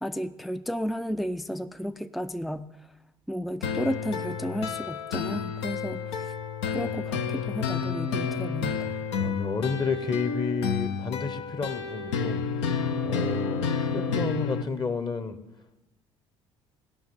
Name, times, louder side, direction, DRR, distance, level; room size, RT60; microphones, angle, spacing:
voice 1, 0.0-2.7 3.3-6.3 6.7-8.9, equal, ahead, 11 dB, 0.4 m, -33 dB
sound 1, 3.6-14.6, left 6 dB, 75° left, 0.7 m, -30 dB
voice 2, 9.2-15.4, left 4 dB, 30° left, 12 dB, 0.9 m, -31 dB
17.0 x 5.8 x 7.1 m, 1.0 s
figure-of-eight pair, 55°, 15 cm